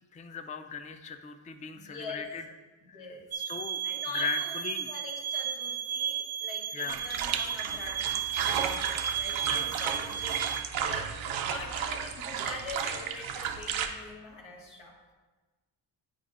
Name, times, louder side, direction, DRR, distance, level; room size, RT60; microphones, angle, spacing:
voice 1, 0.1-2.4 2.9-3.0 3.4-3.8 4.1-4.9 6.7-7.0 9.4-9.7, left 6 dB, 15° left, 7 dB, 0.4 m, -38 dB
voice 2, 1.7-2.3 2.8-3.4 3.8-8.8 9.1-10.4 10.8-15.1, left 3 dB, 85° left, -1 dB, 1.4 m, -44 dB
sound 1, 3.3-10.6, right 8 dB, 35° right, 0.5 m, -34 dB
sound 2, 6.9-13.9, right 8 dB, 85° right, 0.7 m, -33 dB
9.2 x 4.9 x 2.5 m, 1.3 s
cardioid pair, 80°, 45 cm